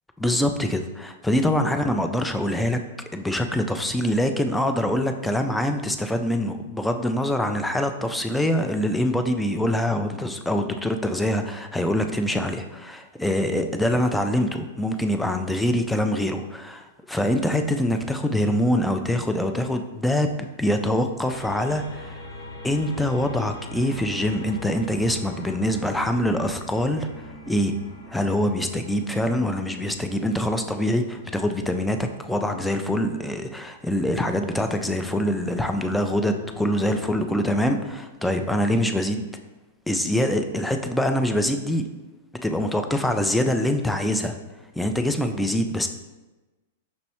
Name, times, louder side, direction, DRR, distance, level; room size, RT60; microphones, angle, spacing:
voice 1, 0.2-2.8 3.1-20.3 20.6-22.2 22.6-27.1 27.5-27.7 28.1-39.2 39.9-41.8 42.4-44.4 44.8-45.9, left 1 dB, 5° left, 6 dB, 0.4 m, -24 dB
sound 1, 21.2-32.7 34.0-37.4, left 1 dB, 70° left, 0.9 m, -42 dB
5.4 x 3.0 x 2.9 m, 1.1 s
figure-of-eight pair, 100°, 0 cm